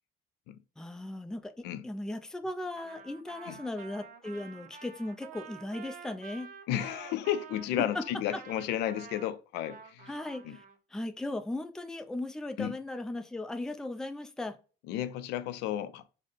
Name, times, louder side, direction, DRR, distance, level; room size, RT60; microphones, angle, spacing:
voice 1, 0.8-1.5 1.8-6.5 7.9-8.0 8.3-8.4 10.1-10.6 10.9-14.6, left 1 dB, 5° left, 0.3 m, -37 dB
Trumpet, 2.8-10.8, right 7 dB, 55° right, 0.6 m, -49 dB
voice 2, 6.7-10.1 10.4-10.6 12.6-12.7 14.9-16.2, left 11 dB, 85° left, 0.4 m, -33 dB
3.7 x 2.1 x 3.3 m
cardioid pair, 110°, 17 cm